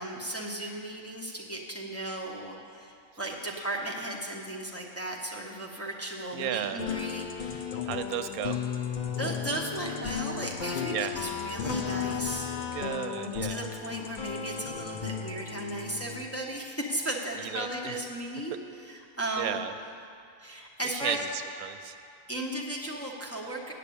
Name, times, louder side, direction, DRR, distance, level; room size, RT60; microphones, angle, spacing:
voice 1, 0.0-7.7 9.2-12.5 13.5-18.6 18.9-19.6 20.4-21.2 22.3-23.7, right 1 dB, 15° left, -3 dB, 0.6 m, -35 dB
voice 2, 6.3-6.8 7.8-8.6 10.9-11.1 12.7-13.7 17.3-18.0 19.4-19.8 20.8-22.0, right 11 dB, 85° right, 10 dB, 1.0 m, -34 dB
sound 1, 6.8-16.2, left 7 dB, 60° left, 0.5 m, -34 dB
8.4 x 6.9 x 8.4 m, 2.6 s
omnidirectional pair, 1.5 m